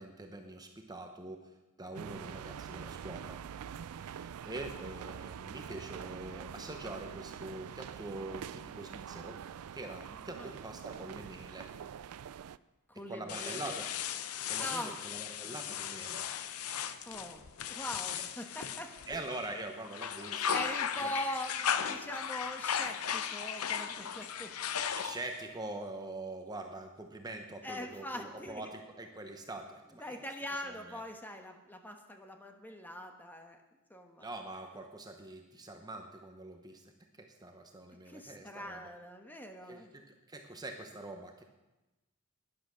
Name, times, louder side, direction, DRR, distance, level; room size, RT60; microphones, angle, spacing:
voice 1, 0.0-3.4 3.9-9.4 9.7-11.7 13.1-13.9 14.5-16.3 19.1-20.7 21.0-21.1 24.8-30.3 30.6-31.0 34.2-36.9 37.2-38.9 39.7-41.4, right 2 dB, 20° right, 4 dB, 0.9 m, -44 dB
sound 1, 1.9-12.6, right 8 dB, 85° right, 0.4 m, -45 dB
voice 2, 12.9-13.8 14.6-15.0 15.5-15.6 17.0-18.9 20.5-24.8 27.6-28.7 30.0-33.6 33.9-34.3 38.1-39.9, left 1 dB, 10° left, 4 dB, 1.2 m, -42 dB
sound 2, 13.3-19.5 19.8-25.4, left 8 dB, 80° left, 0.7 m, -36 dB
11.5 x 10.5 x 6.3 m, 1.0 s
head